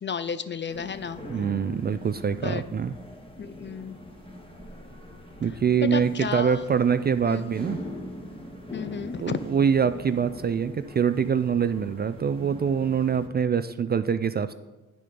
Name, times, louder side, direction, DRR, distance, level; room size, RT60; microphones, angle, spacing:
voice 1, 0.0-1.2 2.4-2.6 3.4-4.0 5.8-6.6 7.3-7.4 8.7-9.5, left 6 dB, 35° left, 13 dB, 0.5 m, -32 dB
sound 1, 0.7-13.3, left 1 dB, 15° left, 1.6 m, -42 dB
voice 2, 1.3-2.9 5.4-7.8 9.2-14.5, right 7 dB, 30° right, 11 dB, 0.4 m, -24 dB
9.3 x 3.8 x 5.1 m, 1.1 s
supercardioid pair, 50°, 34 cm